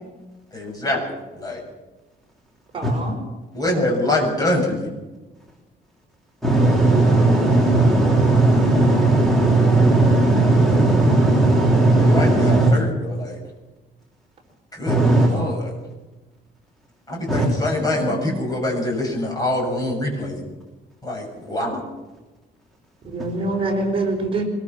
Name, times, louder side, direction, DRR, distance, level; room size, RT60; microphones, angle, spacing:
voice 1, 0.5-1.0 1.4-1.6 3.5-4.9 11.9-13.4 14.7-15.0 15.3-15.7 17.1-20.4 21.0-21.8, left 1 dB, 20° left, 0 dB, 7.2 m, -24 dB
voice 2, 2.7-3.2 18.2-18.3 23.0-24.4, right 2 dB, 30° right, 1 dB, 4.7 m, -25 dB
voice 3, 6.4-12.7 14.9-15.3 17.3-17.5, right 2 dB, ahead, -1 dB, 3.4 m, -16 dB
23.5 x 22.5 x 6.2 m, 1.1 s
cardioid pair, 170°, 18 cm